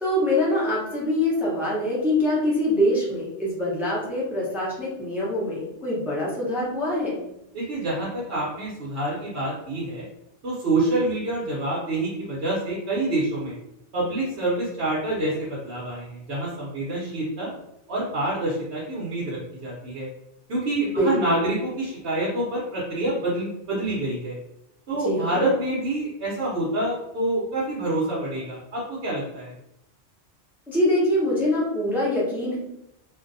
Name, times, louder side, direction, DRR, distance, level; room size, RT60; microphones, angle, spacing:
voice 1, 0.0-7.2 20.8-21.4 24.9-25.5 30.7-32.6, left 1 dB, ahead, -6 dB, 0.6 m, -24 dB
voice 2, 7.5-10.0 10.4-13.5 13.9-17.5 17.9-20.1 20.5-24.3 24.9-29.5, right 1 dB, 60° right, -7 dB, 0.9 m, -27 dB
2.5 x 2.1 x 2.5 m, 0.84 s
omnidirectional pair, 1.2 m